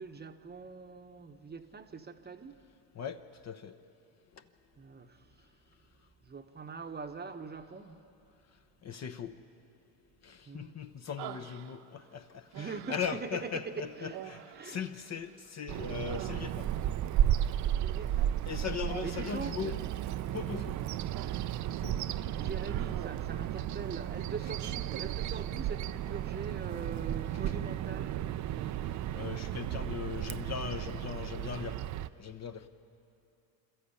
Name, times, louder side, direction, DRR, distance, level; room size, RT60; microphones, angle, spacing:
voice 1, 0.0-2.6 4.8-5.5 6.2-8.0 10.5-10.8 12.5-14.2 14.5-14.8 17.8-18.7 19.0-19.8 22.4-28.2, right 5 dB, 20° right, 1.0 m, -43 dB
voice 2, 2.9-3.7 8.8-9.4 10.2-16.7 18.5-19.8 20.3-20.8 21.8-22.0 29.1-31.8 32.2-32.6, left 7 dB, 35° left, 0.9 m, -39 dB
Human voice, 11.2-12.1 12.5-13.3 14.1-15.5 15.8-16.9 18.9-19.6 20.6-21.6 22.0-22.2 22.6-23.4, right 12 dB, 70° right, 1.2 m, -47 dB
Bird vocalization bird call bird song, 15.7-32.1, right 11 dB, 40° right, 0.5 m, -34 dB
27.0 x 14.0 x 8.4 m
hypercardioid pair, 85°, 49 cm